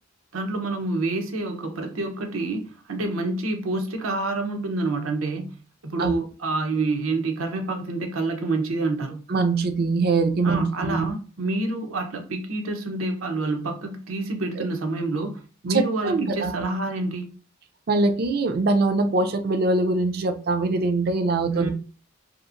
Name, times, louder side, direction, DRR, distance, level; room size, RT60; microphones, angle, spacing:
voice 1, 0.3-5.5 5.8-9.2 10.4-17.3 21.5-21.7, right 2 dB, 90° right, 0.6 m, -28 dB
voice 2, 9.3-11.1 14.6-14.7 15.7-16.6 17.9-21.7, right 3 dB, 50° right, 0.4 m, -23 dB
2.8 x 2.4 x 2.4 m
head